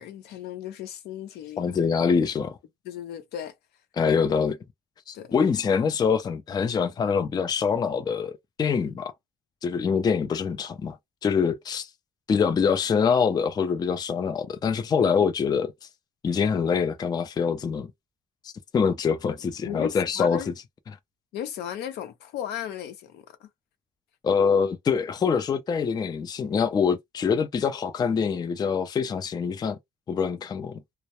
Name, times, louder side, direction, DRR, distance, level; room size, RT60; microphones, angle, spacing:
voice 1, 0.0-1.7 2.9-3.5 5.1-5.3 19.7-20.5 21.3-23.5, left 10 dB, 75° left, 0.6 m, -36 dB
voice 2, 1.6-2.6 4.0-4.6 5.1-9.1 9.6-11.0 11.2-11.9 12.3-15.7 16.2-17.9 18.7-20.5 20.9-21.0 24.2-29.8 30.1-30.8, left 6 dB, 25° left, 0.4 m, -24 dB
2.1 x 2.0 x 2.9 m
cardioid pair, 110°, 17 cm